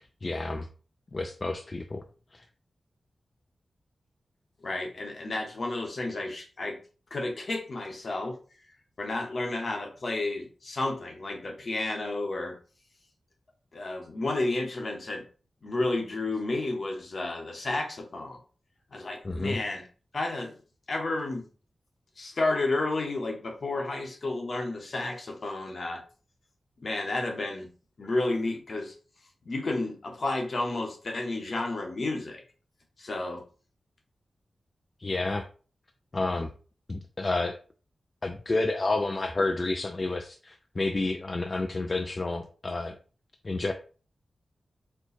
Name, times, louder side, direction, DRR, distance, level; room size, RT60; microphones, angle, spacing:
voice 1, 0.2-0.7 1.1-2.0 2.3-2.4 19.2-19.6 35.0-35.4 36.1-36.5 36.9-37.6 38.2-42.9 43.4-43.7, left 2 dB, 35° left, 5 dB, 0.4 m, -30 dB
voice 2, 4.6-6.8 7.1-8.4 9.0-12.6 13.7-15.2 15.6-18.4 18.9-19.9 20.1-20.6 20.9-21.5 22.2-26.0 26.8-27.7 28.0-28.9 29.4-32.4 33.0-33.4, left 2 dB, 55° left, 2 dB, 1.0 m, -31 dB
4.5 x 2.3 x 4.1 m, 0.38 s
wide cardioid pair, 110°, 0 cm